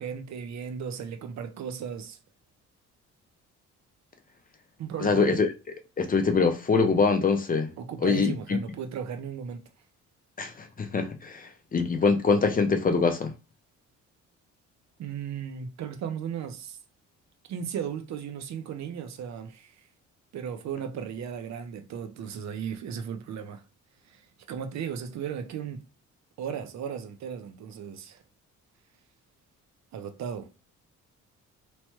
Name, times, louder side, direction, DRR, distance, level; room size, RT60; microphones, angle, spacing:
voice 1, 0.0-2.2 4.8-5.3 7.8-9.7 15.0-16.8 17.5-19.8 20.3-23.6 24.1-25.8 26.4-28.2 29.9-30.5, right 7 dB, 65° right, 0.6 m, -36 dB
voice 2, 5.0-7.7 8.0-8.6 10.4-13.3, left 4 dB, 30° left, 0.5 m, -24 dB
3.0 x 2.1 x 3.0 m
cardioid pair, 90°, 30 cm